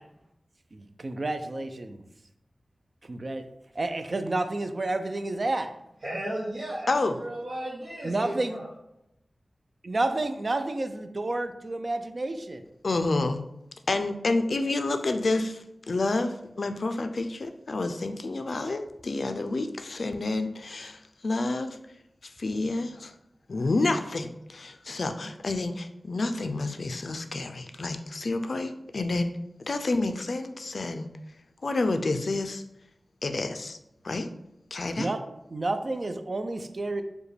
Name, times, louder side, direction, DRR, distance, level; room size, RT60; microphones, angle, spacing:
voice 1, 0.7-2.1 3.0-3.5 3.7-5.7 8.0-8.6 9.8-12.6 35.0-35.2 35.5-37.0, right 2 dB, 50° right, 8 dB, 0.3 m, -30 dB
voice 2, 6.0-6.9 7.2-8.6, right 1 dB, 85° right, -8 dB, 0.7 m, -34 dB
voice 3, 12.8-13.4 13.9-21.8 22.2-23.1 23.5-29.3 29.6-31.1 31.6-32.6 33.2-33.8 34.0-34.3 34.7-35.1, left 2 dB, 65° left, 7 dB, 0.3 m, -29 dB
4.8 x 2.2 x 3.2 m, 0.84 s
wide cardioid pair, 80°, 0 cm